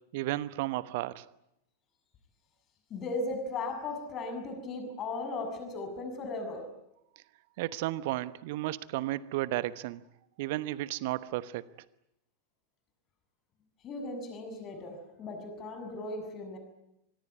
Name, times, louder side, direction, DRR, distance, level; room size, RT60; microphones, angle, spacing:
voice 1, 0.1-1.2 7.6-10.0 10.4-11.6, right 16 dB, 50° right, 17 dB, 1.0 m, -33 dB
voice 2, 2.9-6.7 13.8-16.6, left 2 dB, 30° left, 6 dB, 7.0 m, -37 dB
26.0 x 21.0 x 9.6 m, 0.84 s
figure-of-eight pair, 90°, 0 cm